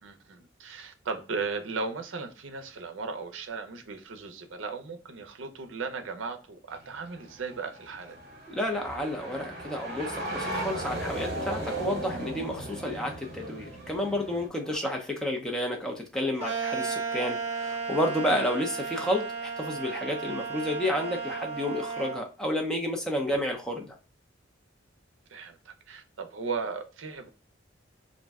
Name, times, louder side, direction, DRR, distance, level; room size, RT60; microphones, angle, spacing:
voice 1, 0.0-8.2 14.6-14.9 25.3-27.3, right 4 dB, 75° right, 0.5 m, -36 dB
sound 1, 6.7-14.5, right 1 dB, 55° right, 1.0 m, -37 dB
voice 2, 8.5-24.0, left 1 dB, 5° left, 0.5 m, -31 dB
sound 2, 16.4-22.2, right 5 dB, 35° right, 0.7 m, -34 dB
2.6 x 2.1 x 3.4 m
head